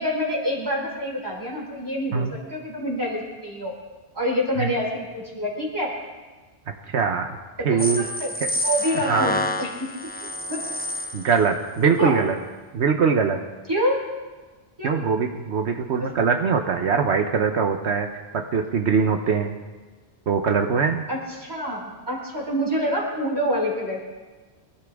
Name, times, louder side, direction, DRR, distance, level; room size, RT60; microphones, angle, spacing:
voice 1, 0.0-3.7 4.1-5.9 7.6-8.3 8.6-9.9 10.5-10.6 11.8-12.1 13.7-14.0 14.8-15.0 16.0-16.1 21.1-24.0, equal, 20° right, -3 dB, 4.3 m, -27 dB
voice 2, 6.9-7.4 7.6-8.0 8.4-8.5 9.1-9.3 11.1-12.4 12.7-13.4 14.8-18.1 18.3-19.5 20.3-21.0, right 6 dB, 75° right, 4 dB, 1.2 m, -22 dB
sound 1, 7.8-11.4, left 1 dB, 10° left, 0.7 m, -28 dB
24.5 x 13.5 x 3.6 m, 1.3 s
omnidirectional pair, 1.1 m